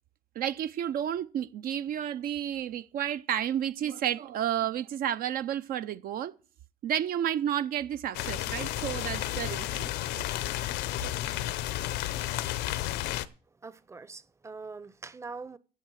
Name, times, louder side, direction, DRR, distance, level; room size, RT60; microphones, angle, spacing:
voice 1, 0.4-6.3 6.8-9.9, right 10 dB, 60° right, 0.5 m, -31 dB
sound 1, 8.1-13.3, left 14 dB, 85° left, 0.7 m, -32 dB
voice 2, 13.6-15.6, right 4 dB, 15° right, 0.7 m, -43 dB
15.5 x 5.7 x 6.3 m
cardioid pair, 110°, 17 cm